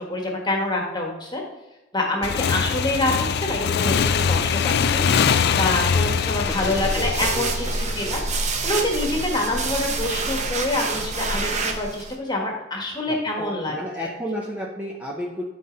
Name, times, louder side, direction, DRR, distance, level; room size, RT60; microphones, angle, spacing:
voice 1, 0.0-1.4 1.9-5.0 5.5-7.5 7.9-8.2 8.6-13.7, left 2 dB, 20° left, 0 dB, 1.5 m, -26 dB
Motorcycle / Engine, 2.2-8.6, left 6 dB, 50° left, 0.3 m, -23 dB
sound 1, 6.2-12.1, right 3 dB, 35° right, 0.8 m, -27 dB
voice 2, 6.4-7.8 8.0-8.1 9.5-9.7 13.0-15.4, equal, 5° right, -2 dB, 0.7 m, -33 dB
11.0 x 4.1 x 3.9 m, 1.0 s
head